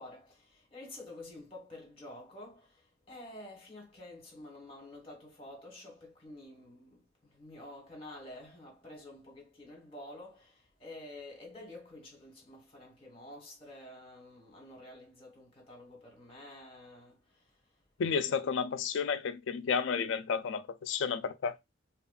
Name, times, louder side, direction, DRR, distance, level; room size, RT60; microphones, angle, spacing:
voice 1, 0.0-2.8 3.1-17.2, left 1 dB, 30° left, 1.4 m, -49 dB
voice 2, 18.0-21.5, left 6 dB, 75° left, 0.4 m, -32 dB
2.9 x 2.5 x 2.3 m
head